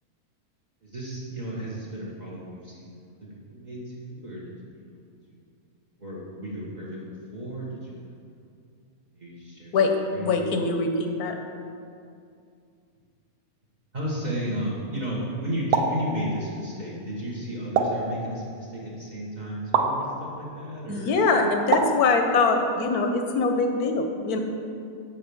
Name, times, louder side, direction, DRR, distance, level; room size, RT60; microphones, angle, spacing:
voice 1, 0.8-5.0 5.3-5.5 6.0-8.4 9.1-9.8 10.1-10.6 13.9-21.2, equal, 30° right, -5 dB, 1.4 m, -34 dB
voice 2, 10.2-11.4 20.9-24.4, left 4 dB, 85° left, 4 dB, 1.3 m, -23 dB
sound 1, 15.7-16.0 17.8-18.1 19.7-20.0 21.7-22.0, right 5 dB, 80° right, 1.1 m, -23 dB
7.1 x 4.7 x 6.9 m, 2.4 s
omnidirectional pair, 1.5 m